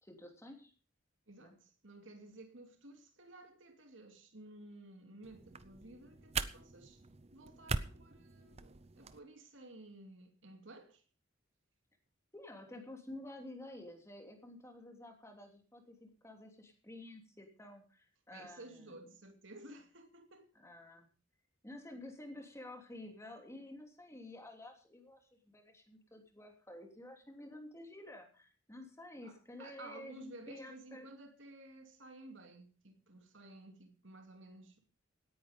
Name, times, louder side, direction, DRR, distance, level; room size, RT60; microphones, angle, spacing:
voice 1, 0.0-0.7 1.4-1.6 12.3-19.0 20.5-21.1 21.6-31.1, left 1 dB, 15° left, 3.1 m, -51 dB
voice 2, 1.3-7.0 7.3-11.0 18.3-20.5 29.2-34.8, right 2 dB, 70° right, 2.7 m, -54 dB
sound 1, 5.2-9.2, right 4 dB, 30° right, 0.7 m, -42 dB
18.0 x 9.8 x 5.2 m
head